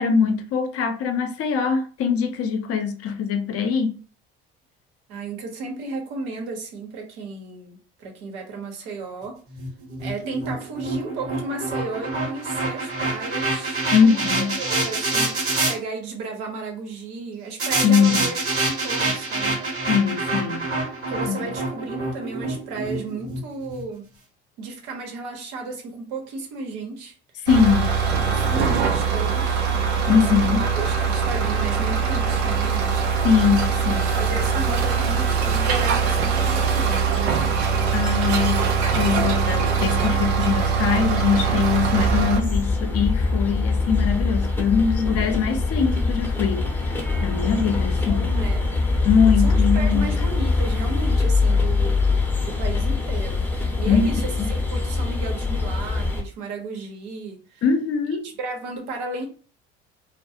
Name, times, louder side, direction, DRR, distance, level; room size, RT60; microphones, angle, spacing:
voice 1, 0.0-3.9 13.9-14.6 17.8-18.3 19.9-20.7 21.3-21.5 27.4-28.0 30.1-30.7 33.2-34.1 37.9-38.7 38.9-46.8 47.2-48.3 49.0-50.1 53.9-54.5 57.6-58.3, left 6 dB, 50° left, 0.6 m, -22 dB
voice 2, 5.1-9.4 10.0-15.4 15.7-19.6 21.1-24.1 24.6-27.1 28.3-29.7 30.1-33.1 33.9-37.5 48.1-48.7 49.4-53.5 53.8-57.6 58.2-59.3, right 3 dB, 70° right, 0.9 m, -34 dB
sound 1, 9.5-15.7 17.6-23.8, right 2 dB, 45° right, 1.0 m, -26 dB
sound 2, 27.5-42.4, right 6 dB, 90° right, 0.5 m, -22 dB
sound 3, 41.9-56.2, left 3 dB, 5° left, 0.7 m, -23 dB
2.3 x 2.0 x 2.7 m
hypercardioid pair, 65°, 31 cm